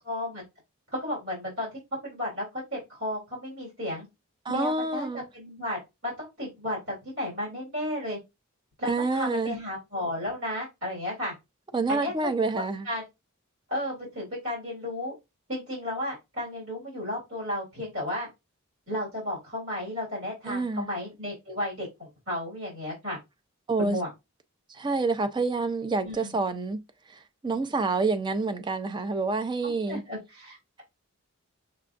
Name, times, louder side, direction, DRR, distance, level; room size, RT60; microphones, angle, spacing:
voice 1, 0.0-0.4 0.9-1.7 2.0-4.0 4.5-5.1 5.3-8.2 8.8-11.3 11.9-13.0 13.7-15.1 15.5-18.3 18.9-23.2 23.8-24.1 26.0-26.3 29.6-30.8, left 1 dB, 65° right, 2.7 m, -33 dB
voice 2, 4.5-5.3 8.9-9.6 11.7-12.9 20.5-20.9 23.7-24.0 24.7-26.8 27.1-30.0, right 3 dB, 20° right, 0.4 m, -28 dB
6.6 x 2.3 x 2.5 m
head